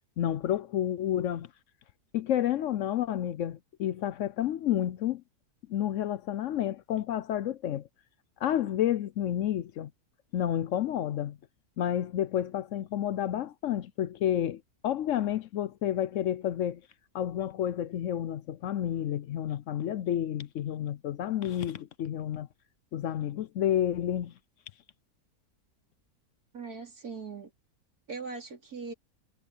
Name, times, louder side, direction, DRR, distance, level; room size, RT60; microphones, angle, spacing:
voice 1, 0.2-1.5 2.1-5.2 5.7-7.9 8.4-9.9 10.3-11.4 11.8-16.8 17.1-22.5 22.9-24.3, left 11 dB, 65° left, 0.8 m, -30 dB
voice 2, 26.5-27.5 28.1-28.9, right 4 dB, 80° right, 3.9 m, -40 dB
omnidirectional pair, 1.6 m